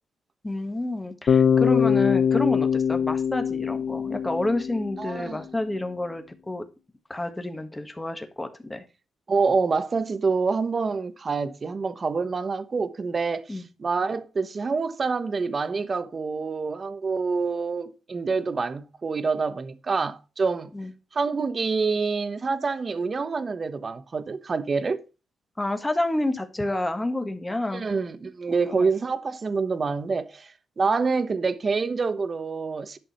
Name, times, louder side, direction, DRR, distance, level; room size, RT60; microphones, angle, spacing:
voice 1, 0.4-6.6 7.1-8.8 13.5-13.7 20.7-20.9 25.6-27.8 28.6-28.9, left 1 dB, 10° left, 1.5 m, -29 dB
Bass guitar, 1.3-5.3, left 7 dB, 50° left, 0.5 m, -23 dB
voice 2, 5.0-5.4 9.3-20.7 21.1-25.0 27.7-33.0, right 4 dB, 35° right, 1.0 m, -27 dB
11.0 x 6.2 x 4.2 m
cardioid pair, 115°, 0 cm